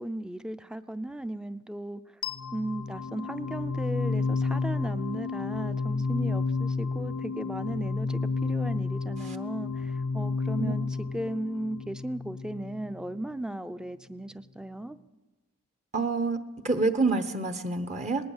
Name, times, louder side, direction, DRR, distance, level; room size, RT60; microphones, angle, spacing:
voice 1, 0.0-2.0 2.5-15.0, right 1 dB, 5° right, 12 dB, 0.5 m, -36 dB
sound 1, 2.2-13.2, left 4 dB, 90° left, 1.1 m, -31 dB
voice 2, 15.9-16.4 16.6-18.2, right 3 dB, 35° right, 9 dB, 1.0 m, -27 dB
19.5 x 18.5 x 7.3 m, 1.2 s
head